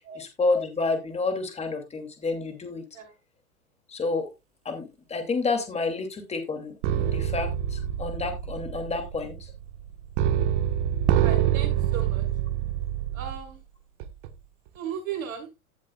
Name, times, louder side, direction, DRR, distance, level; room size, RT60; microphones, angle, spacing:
voice 1, 0.2-2.8 3.9-4.3 4.6-9.5, left 3 dB, 15° left, 6 dB, 2.7 m, -29 dB
sound 1, 6.8-13.5 14.0-14.3, right 11 dB, 55° right, 1.5 m, -26 dB
voice 2, 11.1-12.3 13.1-13.6 14.7-15.5, right 7 dB, 75° right, 2 dB, 6.4 m, -36 dB
15.5 x 7.5 x 2.4 m, 0.23 s
hypercardioid pair, 115°, 42 cm